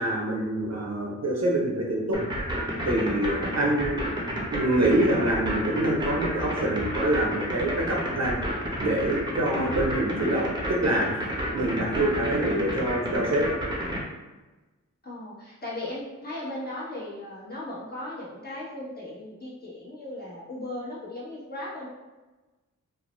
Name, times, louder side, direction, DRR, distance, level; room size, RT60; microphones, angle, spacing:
voice 1, 0.0-2.2 2.8-4.0 4.5-8.4 8.8-13.5, right 1 dB, 55° right, -2 dB, 0.7 m, -26 dB
sound 1, 2.1-14.0, equal, 15° right, 0.7 m, -30 dB
voice 2, 15.0-21.9, left 1 dB, 30° left, -7 dB, 1.1 m, -37 dB
2.6 x 2.0 x 3.0 m, 1.2 s
cardioid pair, 45°, 32 cm